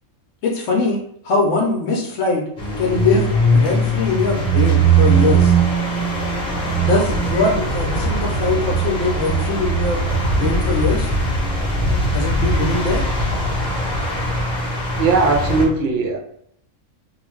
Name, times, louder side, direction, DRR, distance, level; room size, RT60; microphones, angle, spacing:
voice 1, 0.4-1.0 1.2-2.4 2.8-5.5 6.8-10.0 10.3-11.1 12.1-13.1, left 3 dB, 70° left, -1 dB, 0.9 m, -21 dB
sound 1, 2.6-15.6, right 3 dB, 45° left, 0.8 m, -20 dB
voice 2, 15.0-16.2, right 3 dB, 65° right, 3 dB, 0.7 m, -18 dB
2.4 x 2.2 x 3.1 m, 0.69 s
omnidirectional pair, 1.4 m